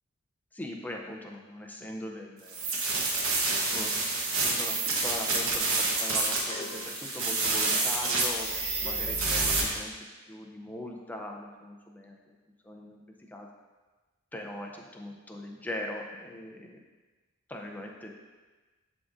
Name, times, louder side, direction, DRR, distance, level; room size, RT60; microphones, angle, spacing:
voice 1, 0.5-2.6 3.3-9.9 10.2-12.4 12.6-13.5 14.3-16.8 17.5-18.1, left 1 dB, 10° left, 0 dB, 0.5 m, -41 dB
sound 1, 2.5-9.6, right 3 dB, 85° right, 1.2 m, -28 dB
sound 2, 6.0-9.7, left 1 dB, 30° left, 1.0 m, -39 dB
10.5 x 3.6 x 2.6 m, 1.3 s
head